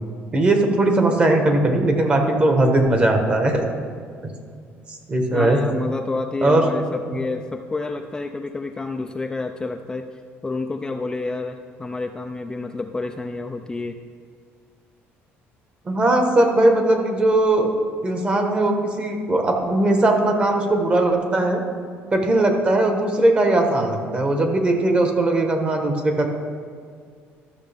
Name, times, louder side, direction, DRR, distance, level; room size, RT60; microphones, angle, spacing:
voice 1, 0.3-3.7 5.1-5.6 6.4-6.7 15.8-17.7 18.0-21.6 22.1-26.3, right 2 dB, 25° right, 4 dB, 1.2 m, -19 dB
voice 2, 5.3-10.1 10.4-14.0, left 3 dB, 15° left, 4 dB, 0.3 m, -29 dB
12.5 x 6.4 x 3.5 m, 2.1 s
cardioid pair, 125°, 5 cm